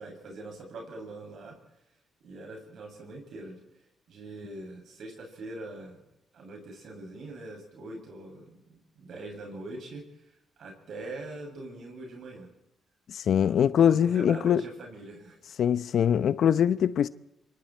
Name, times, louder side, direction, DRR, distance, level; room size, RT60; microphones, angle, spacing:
voice 1, 0.0-1.6 2.2-3.6 4.1-6.0 6.3-10.0 10.6-12.5 13.4-15.4, right 2 dB, 65° right, 7.4 m, -42 dB
voice 2, 13.1-14.6 15.6-17.1, left 9 dB, 65° left, 0.8 m, -23 dB
25.5 x 24.0 x 4.5 m
cardioid pair, 90°, 0 cm